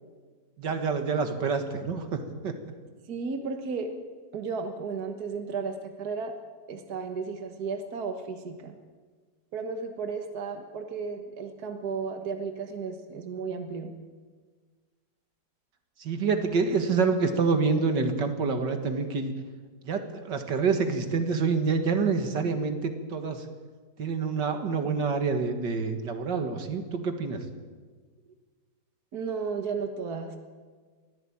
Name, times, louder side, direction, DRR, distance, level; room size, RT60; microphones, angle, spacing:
voice 1, 0.6-2.6 16.0-19.3 19.8-23.5 24.0-27.4, right 4 dB, 80° right, 7 dB, 2.4 m, -27 dB
voice 2, 3.1-3.9 4.3-6.4 6.7-8.7 9.5-13.9 29.1-30.4, right 5 dB, 60° right, 6 dB, 1.9 m, -34 dB
22.5 x 15.0 x 8.7 m, 1.5 s
omnidirectional pair, 1.9 m